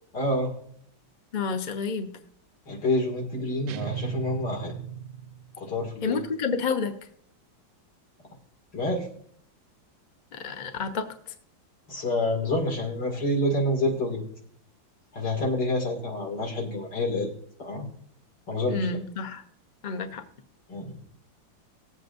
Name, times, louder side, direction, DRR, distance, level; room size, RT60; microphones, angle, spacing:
voice 1, 0.1-0.5 2.7-4.7 5.6-6.2 8.7-9.1 11.9-14.2 15.1-17.3 17.6-17.8 18.5-18.9 20.7-21.0, left 1 dB, 65° left, -1 dB, 3.0 m, -28 dB
voice 2, 1.3-2.1 6.0-6.9 10.3-11.3 18.7-19.4 19.8-20.2, left 5 dB, 40° left, 7 dB, 0.6 m, -30 dB
sound 1, 3.7-5.7, right 9 dB, 85° right, 1.3 m, -35 dB
19.0 x 7.9 x 2.6 m, 0.64 s
omnidirectional pair, 2.1 m